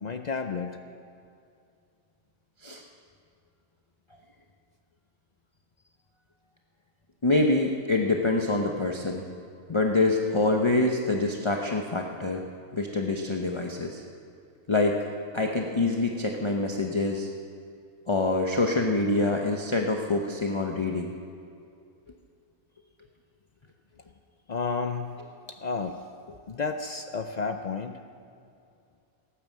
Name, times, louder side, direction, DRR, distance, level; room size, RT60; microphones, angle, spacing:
voice 1, 0.0-0.8 24.5-25.2 25.5-26.0 26.5-28.0, left 4 dB, 80° left, 7 dB, 0.3 m, -31 dB
voice 2, 7.2-9.2 9.7-12.4 12.7-14.0 14.7-15.1 15.3-17.3 18.1-21.1, left 2 dB, 25° left, 2 dB, 0.7 m, -25 dB
17.5 x 9.4 x 7.3 m, 2.4 s
omnidirectional pair, 1.5 m